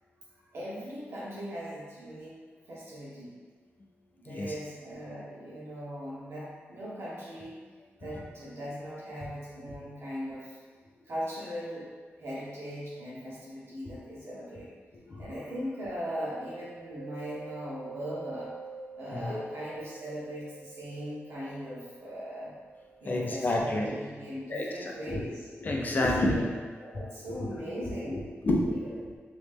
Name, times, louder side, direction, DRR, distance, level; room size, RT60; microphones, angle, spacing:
voice 1, 0.5-2.4 2.7-3.3 4.2-7.6 8.0-10.6 11.1-11.9 12.2-14.7 15.1-18.5 19.0-22.5 23.0-25.5 26.2-26.5 26.8-28.2 28.7-29.2, equal, 70° right, -8 dB, 1.2 m, -39 dB
Mallet percussion, 16.1-25.6, right 5 dB, ahead, 1.0 m, -49 dB
voice 2, 19.1-19.4 23.0-23.9 24.5-25.2 25.6-26.5 27.4-29.0, left 1 dB, 40° left, -1 dB, 0.5 m, -30 dB
3.1 x 3.0 x 3.4 m, 1.5 s
wide cardioid pair, 145°, 5 cm